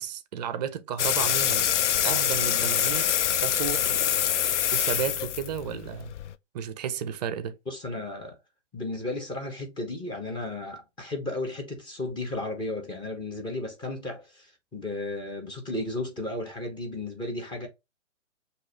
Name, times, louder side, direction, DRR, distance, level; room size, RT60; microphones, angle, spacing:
voice 1, 0.0-1.7 2.0-3.1 3.4-4.1 4.7-6.1 6.5-7.6, right 8 dB, 35° right, 0.5 m, -33 dB
sound 1, 1.0-6.3, left 10 dB, 70° left, 0.5 m, -25 dB
voice 2, 7.7-8.4 8.7-17.7, left 2 dB, 10° left, 1.2 m, -34 dB
6.1 x 2.8 x 3.0 m
hypercardioid pair, 130°, 37 cm